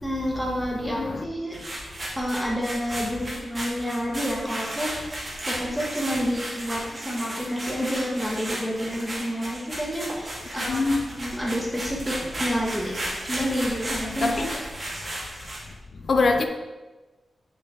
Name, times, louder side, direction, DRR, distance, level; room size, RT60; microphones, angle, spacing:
voice 1, 0.0-1.6 2.1-14.7, equal, ahead, 1.7 m, -29 dB
voice 2, 0.8-1.3 10.7-11.0 14.2-14.6 16.1-16.5, left 3 dB, 55° left, 0.7 m, -23 dB
sound 1, 1.5-15.7, right 1 dB, 30° right, 2.4 m, -34 dB
6.6 x 5.7 x 5.0 m
wide cardioid pair, 125°, 0 cm